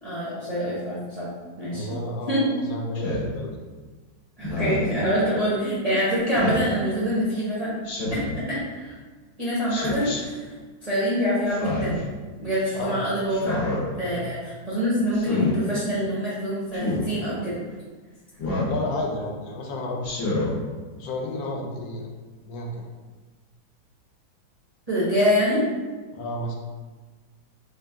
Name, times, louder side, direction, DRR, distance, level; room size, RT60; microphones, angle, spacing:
voice 1, 0.0-1.3 1.6-1.9 2.3-2.4 4.4-7.7 8.1-8.9 9.4-10.5 10.8-12.0 12.4-13.7 14.0-17.6 24.9-25.6, equal, 35° right, -10 dB, 0.5 m, -25 dB
voice 2, 1.7-3.6 12.7-13.0 13.9-14.2 18.7-20.0 21.0-22.1 22.5-22.9 26.1-26.6, left 1 dB, 75° left, 1 dB, 1.3 m, -31 dB
Speech synthesizer, 3.0-3.3 4.4-4.9 6.3-6.7 7.8-8.4 9.7-10.2 11.5-12.0 13.3-13.8 15.1-15.5 16.7-17.1 18.4-18.8 20.0-20.5, left 2 dB, 45° left, 0.8 m, -27 dB
3.4 x 2.8 x 3.4 m, 1.4 s
omnidirectional pair, 2.2 m